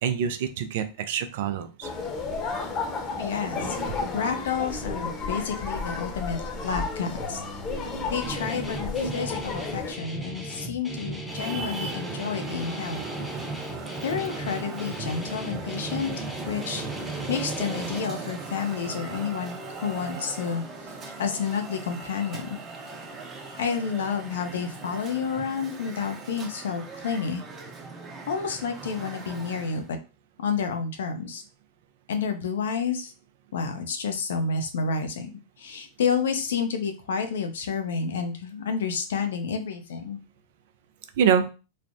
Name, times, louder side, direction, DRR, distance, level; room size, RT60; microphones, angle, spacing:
voice 1, 0.0-1.9 41.2-41.5, right 7 dB, 65° right, 10 dB, 0.4 m, -25 dB
sound 1, 1.8-9.9, left 4 dB, 35° left, 0.8 m, -32 dB
voice 2, 3.2-3.8 4.1-7.4 8.1-13.1 14.0-16.1 16.5-16.9 17.3-20.6 21.2-22.6 23.6-27.4 28.3-29.8 30.4-31.4 32.1-33.1 33.5-35.3 35.6-40.2, left 6 dB, 75° left, 6 dB, 0.6 m, -30 dB
Guitar, 8.2-18.0, right 1 dB, 5° left, 0.8 m, -37 dB
Traffic noise roadway noise, 11.2-29.9, right 4 dB, 30° right, 0.8 m, -38 dB
3.2 x 2.1 x 2.6 m, 0.32 s
hypercardioid pair, 105°, 0 cm